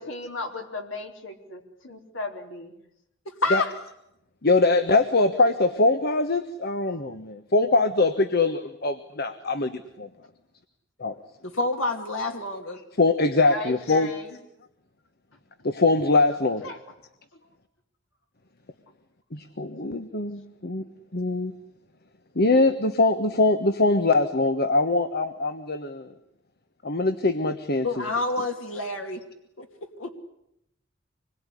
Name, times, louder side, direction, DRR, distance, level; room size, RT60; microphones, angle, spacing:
voice 1, 0.0-2.8 13.5-14.4 15.3-15.4 16.6-16.8 17.3-17.5 19.6-19.7, left 2 dB, 70° left, 3 dB, 4.4 m, -37 dB
voice 2, 4.4-10.1 11.0-11.1 13.0-14.1 15.6-16.6 19.3-20.8 21.1-21.5 22.3-26.1 26.8-28.0, left 3 dB, 55° left, 10 dB, 1.4 m, -23 dB
voice 3, 11.4-12.8 27.8-29.2 29.6-29.7 30.0-30.1, left 2 dB, 90° left, 4 dB, 2.7 m, -28 dB
26.5 x 21.5 x 10.0 m, 0.80 s
head